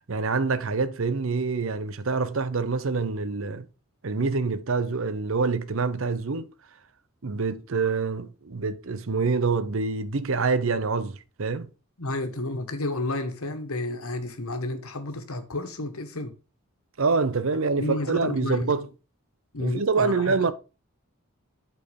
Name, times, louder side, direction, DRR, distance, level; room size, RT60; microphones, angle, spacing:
voice 1, 0.1-3.7 4.0-6.5 7.2-11.7 17.0-18.9 19.6-20.5, right 4 dB, 65° right, 0.7 m, -26 dB
voice 2, 12.0-16.3 17.8-18.7 19.5-20.5, left 2 dB, 80° left, 1.5 m, -31 dB
8.4 x 4.5 x 5.2 m
head